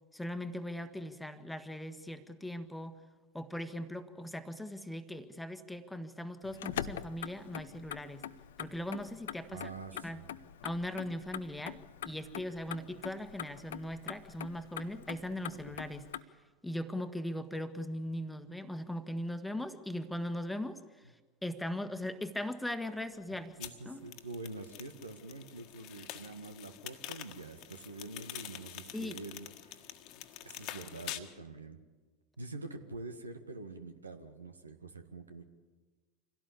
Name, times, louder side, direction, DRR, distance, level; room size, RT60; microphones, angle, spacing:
voice 1, 0.1-3.0 3.3-8.3 8.6-9.6 10.0-10.2 10.6-11.8 12.0-16.1 16.6-20.8 21.4-23.5 23.8-24.0 28.9-29.2, left 1 dB, 5° left, 9 dB, 1.5 m, -39 dB
Motor vehicle (road), 6.4-16.2, left 10 dB, 70° left, 0.7 m, -44 dB
voice 2, 9.5-10.3 23.6-30.0 30.5-31.8 32.4-35.4, right 3 dB, 85° right, 7 dB, 1.7 m, -46 dB
sound 1, 23.6-31.2, left 13 dB, 50° left, 1.6 m, -46 dB
26.0 x 17.0 x 8.5 m, 1.4 s
figure-of-eight pair, 80°, 0 cm